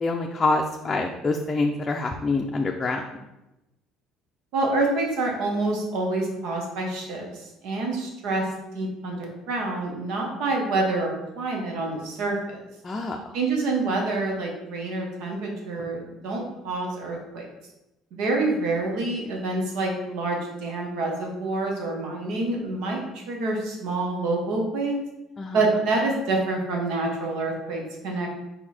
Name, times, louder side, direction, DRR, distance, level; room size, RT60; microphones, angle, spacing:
voice 1, 0.0-3.0 12.8-13.2 25.4-25.6, left 3 dB, 25° left, 1 dB, 0.5 m, -26 dB
voice 2, 4.5-8.5 8.7-12.6 13.3-17.5 18.1-25.0 25.5-28.3, right 2 dB, 75° right, 0 dB, 1.4 m, -27 dB
5.0 x 4.6 x 4.3 m, 0.95 s
cardioid pair, 125°, 0 cm